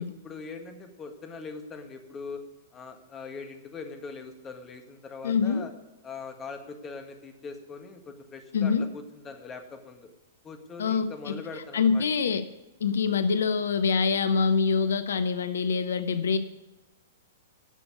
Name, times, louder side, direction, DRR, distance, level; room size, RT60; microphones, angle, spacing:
voice 1, 0.0-2.4 2.7-5.7 6.0-10.1 10.4-12.0, left 4 dB, 20° left, 6 dB, 1.7 m, -41 dB
voice 2, 5.2-5.7 8.5-8.9 10.8-11.4 11.7-12.4 12.8-16.4, left 5 dB, 65° left, 12 dB, 0.7 m, -25 dB
11.0 x 6.9 x 8.1 m, 0.99 s
figure-of-eight pair, 105°, 0 cm